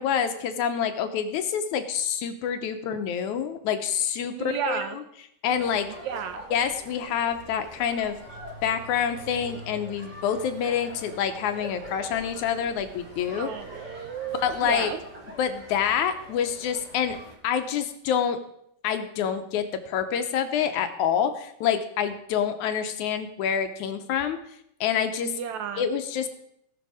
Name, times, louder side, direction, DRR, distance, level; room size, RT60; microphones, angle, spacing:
voice 1, 0.0-4.8 5.4-5.9 6.5-8.2 8.6-13.5 14.4-14.9 15.4-17.2 17.4-18.4 18.8-24.4 24.8-25.3 25.8-26.3, left 8 dB, 75° left, 8 dB, 2.0 m, -27 dB
voice 2, 4.3-5.0 6.0-6.4 13.4-15.0 25.2-25.9, right 8 dB, 75° right, 9 dB, 1.8 m, -33 dB
sound 1, 5.5-17.3, equal, 30° right, 3.7 m, -43 dB
18.5 x 6.3 x 4.8 m, 0.74 s
omnidirectional pair, 3.8 m